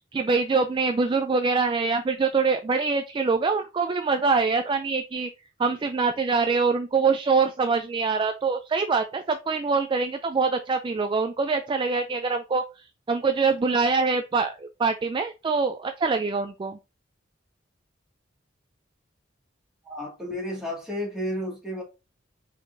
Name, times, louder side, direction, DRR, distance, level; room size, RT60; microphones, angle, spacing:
voice 1, 0.1-5.3 5.6-16.8, right 4 dB, 25° right, 0.3 m, -24 dB
voice 2, 19.8-21.8, equal, 5° right, 2.0 m, -32 dB
4.7 x 4.1 x 2.6 m
head